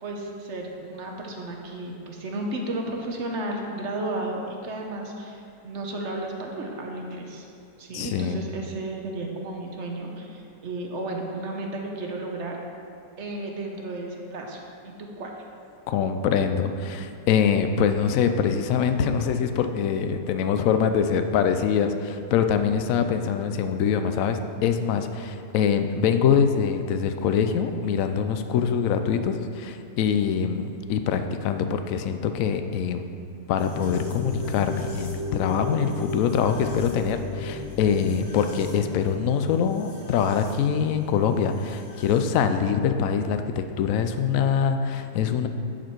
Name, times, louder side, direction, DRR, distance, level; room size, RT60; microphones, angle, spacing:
voice 1, 0.0-7.5 7.8-12.6 13.2-15.3, right 2 dB, 55° right, 1 dB, 1.1 m, -33 dB
voice 2, 7.9-8.4 15.9-33.1 33.5-45.5, left 7 dB, 70° left, 8 dB, 0.9 m, -24 dB
sound 1, 33.6-42.3, left 3 dB, 85° left, 1.9 m, -35 dB
10.0 x 5.0 x 4.5 m, 2.5 s
omnidirectional pair, 1.7 m